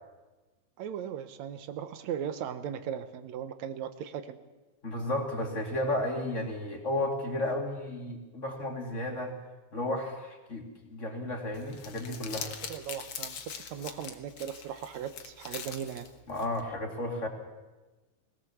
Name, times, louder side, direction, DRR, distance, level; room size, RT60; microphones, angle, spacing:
voice 1, 0.8-4.4 12.3-13.4 13.7-16.1, right 9 dB, 70° right, 11 dB, 2.1 m, -38 dB
voice 2, 4.8-9.3 9.7-12.5 16.3-17.3, left 1 dB, 25° left, 2 dB, 2.5 m, -33 dB
Crumpling crinkling, 11.5-16.6, left 7 dB, 55° left, 1.9 m, -43 dB
21.5 x 17.0 x 7.1 m, 1.2 s
omnidirectional pair, 3.5 m